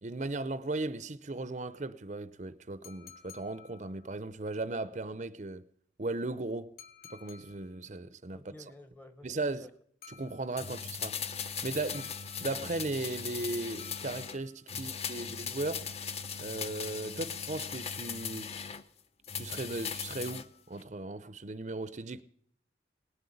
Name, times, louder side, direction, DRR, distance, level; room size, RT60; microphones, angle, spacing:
voice 1, 0.0-5.6 6.0-6.7 7.1-8.5 9.2-9.7 10.1-11.2 11.6-12.1 12.4-15.9 16.4-18.5 19.3-22.2, right 2 dB, 40° right, 0.6 m, -37 dB
sound 1, 2.8-4.3 6.8-7.9 10.0-10.9 11.9-13.0 13.8-14.8 15.7-16.7 17.7-18.6 19.8-20.9, left 8 dB, 55° left, 1.7 m, -56 dB
voice 2, 8.3-9.7 14.8-14.9 15.8-15.9, left 1 dB, 10° left, 1.0 m, -53 dB
sound 2, 10.6-14.4 14.7-18.8 19.2-20.5 20.8-20.9, left 7 dB, 35° left, 0.7 m, -39 dB
18.5 x 7.9 x 9.9 m
head